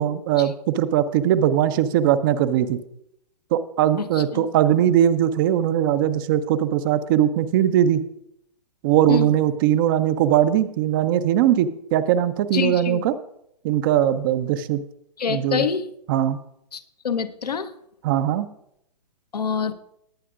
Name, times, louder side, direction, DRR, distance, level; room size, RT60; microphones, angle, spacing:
voice 1, 0.0-2.8 3.5-8.0 8.8-13.1 13.6-14.8 15.3-15.6 16.1-16.4 18.0-18.5, right 11 dB, 30° right, 12 dB, 0.6 m, -20 dB
voice 2, 12.5-13.0 15.2-15.9 16.7-17.7 19.3-19.7, left 6 dB, 70° left, 9 dB, 0.9 m, -26 dB
19.5 x 9.1 x 2.5 m, 0.75 s
figure-of-eight pair, 120°, 21 cm